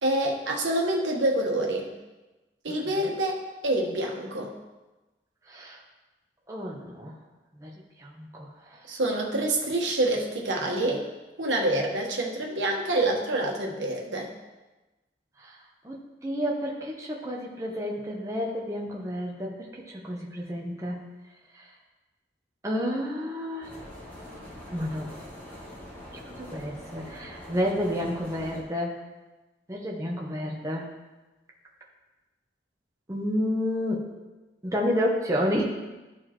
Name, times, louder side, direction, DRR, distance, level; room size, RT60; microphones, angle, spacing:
voice 1, 0.0-1.9 2.6-4.5 8.9-11.0 11.4-14.3, right 1 dB, 90° right, 0 dB, 1.3 m, -27 dB
voice 2, 5.5-5.8 6.5-7.1 7.6-7.7 8.0-8.8 15.4-15.6 15.8-21.0 21.5-21.7 22.6-23.7 24.7-25.1 26.4-29.0 29.7-30.9 33.1-34.2 34.6-35.7, equal, 15° right, -2 dB, 0.9 m, -30 dB
sound 1, 23.6-28.6, left 1 dB, 10° left, 1.5 m, -44 dB
13.5 x 4.4 x 3.0 m, 1.1 s
head